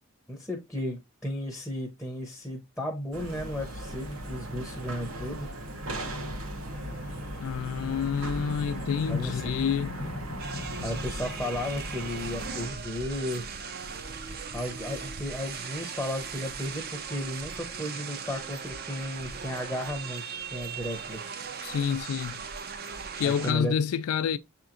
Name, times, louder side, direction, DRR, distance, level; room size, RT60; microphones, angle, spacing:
voice 1, 0.3-5.5 9.1-9.5 10.8-13.5 14.5-21.2 23.2-23.7, left 1 dB, ahead, 0.6 m, -34 dB
sound 1, 3.1-12.7, right 1 dB, 75° right, 0.9 m, -38 dB
sound 2, 6.2-12.1, left 2 dB, 45° left, 0.6 m, -40 dB
voice 2, 7.4-9.9 21.6-22.4 23.1-24.4, left 7 dB, 90° left, 0.3 m, -28 dB
sound 3, 10.4-23.5, right 6 dB, 45° right, 0.5 m, -38 dB
6.9 x 2.9 x 2.4 m
head